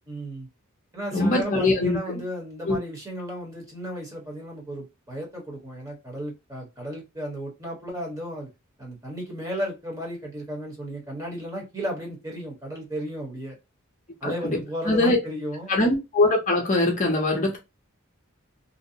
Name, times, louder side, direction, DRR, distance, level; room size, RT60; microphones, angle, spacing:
voice 1, 0.1-0.5 0.9-8.5 8.8-13.5 14.2-15.7, equal, 15° right, 0.9 m, -34 dB
voice 2, 1.1-2.2 2.6-2.8 14.2-14.6 14.9-15.2 15.7-17.6, left 2 dB, 35° left, 0.6 m, -22 dB
2.6 x 2.0 x 2.6 m
head